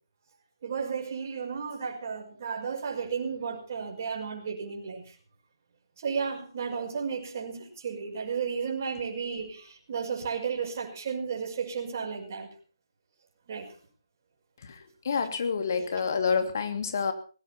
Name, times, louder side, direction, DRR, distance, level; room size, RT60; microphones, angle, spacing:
voice 1, 0.6-5.2 6.0-12.5 13.5-13.7, right 6 dB, 35° right, 1 dB, 5.6 m, -33 dB
voice 2, 14.6-17.1, left 5 dB, 45° left, 7 dB, 2.8 m, -28 dB
19.0 x 16.5 x 4.4 m, 0.39 s
figure-of-eight pair, 145°, 2 cm